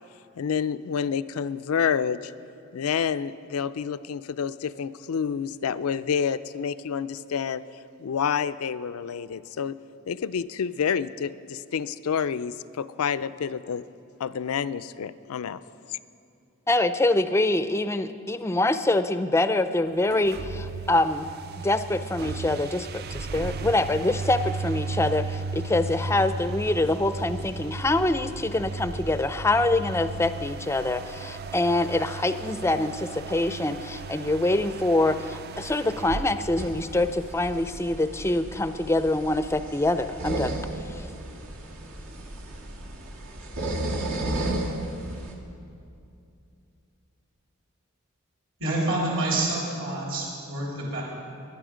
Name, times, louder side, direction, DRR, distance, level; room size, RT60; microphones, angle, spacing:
voice 1, 0.4-2.3 2.7-7.6 8.0-9.7 10.1-13.8 14.2-15.6 15.9-16.0, left 7 dB, 90° left, 15 dB, 0.4 m, -28 dB
voice 2, 16.7-21.3 21.6-41.1, left 2 dB, 10° left, 12 dB, 0.4 m, -25 dB
sound 1, 20.0-37.5, right 3 dB, 50° right, 0.4 m, -35 dB
sound 2, 36.6-45.3, right 1 dB, 80° right, 1.6 m, -34 dB
voice 3, 48.6-51.0, right 2 dB, 65° right, -4 dB, 3.5 m, -27 dB
20.0 x 11.0 x 5.0 m, 2.6 s
head